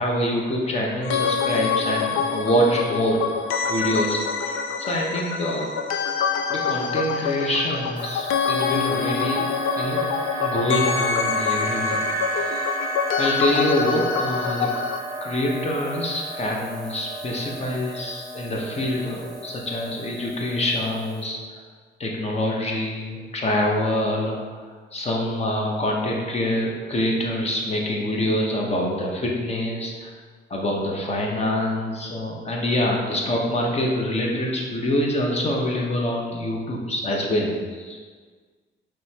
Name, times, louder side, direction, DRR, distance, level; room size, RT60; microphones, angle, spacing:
voice 1, 0.0-3.2 3.7-5.7 6.5-9.5 9.7-10.0 10.4-12.0 12.4-12.7 13.2-14.7 15.2-21.6 22.0-30.1 30.5-38.0, left 1 dB, 35° left, -1 dB, 0.9 m, -25 dB
sound 1, 1.0-15.0, left 6 dB, 85° left, 0.4 m, -26 dB
sound 2, 8.0-21.2, right 2 dB, 20° right, 0.9 m, -33 dB
5.3 x 3.2 x 2.9 m, 1.5 s
cardioid pair, 90°, 20 cm